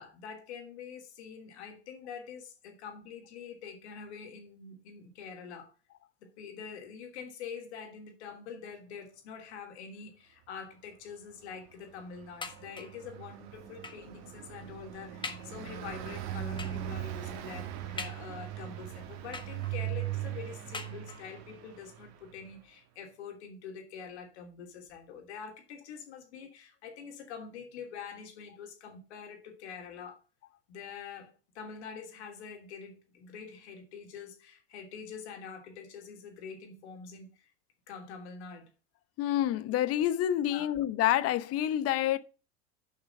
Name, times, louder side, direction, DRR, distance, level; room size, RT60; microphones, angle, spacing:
voice 1, 0.0-5.7 6.2-30.2 30.7-37.5 37.9-38.7 40.5-40.7, left 6 dB, 75° left, 3.1 m, -45 dB
Car passing by, 11.5-22.5, right 12 dB, 55° right, 1.6 m, -40 dB
sound 1, 12.4-13.1 13.8-14.2 14.7-14.8 15.2-15.6 16.6-16.9 18.0-18.6 19.3-19.9 20.7-21.4 22.2-22.3 22.7-22.8, left 4 dB, 15° left, 1.5 m, -43 dB
voice 2, 39.2-42.2, left 12 dB, 45° left, 0.9 m, -28 dB
6.8 x 5.7 x 6.8 m
hypercardioid pair, 90°, 33 cm